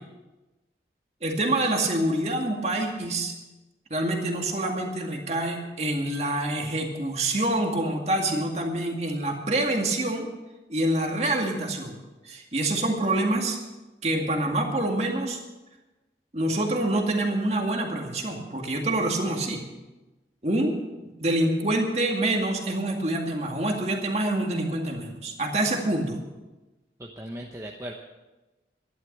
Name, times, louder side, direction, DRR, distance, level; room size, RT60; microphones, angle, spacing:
voice 1, 1.2-3.3 3.9-10.2 10.7-12.0 12.2-13.6 14.0-15.4 16.3-19.7 20.4-20.8 21.2-26.2, right 1 dB, 35° right, 2 dB, 2.1 m, -26 dB
voice 2, 27.0-27.9, equal, 15° right, 0 dB, 1.0 m, -37 dB
13.0 x 11.0 x 6.7 m, 1.1 s
head